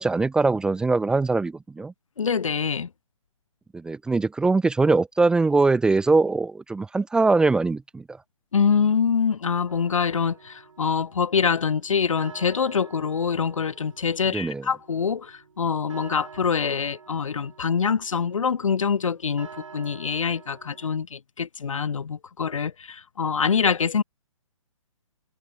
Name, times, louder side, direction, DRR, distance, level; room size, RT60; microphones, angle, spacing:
voice 1, 0.0-1.9 3.7-8.0 14.3-14.7, right 3 dB, 5° right, 0.6 m, -22 dB
voice 2, 2.2-2.9 8.5-19.5 19.7-24.0, left 6 dB, 75° left, 0.6 m, -25 dB
sound 1, 9.7-20.9, right 6 dB, 65° right, 4.6 m, -48 dB
figure-of-eight pair, 130°, 17 cm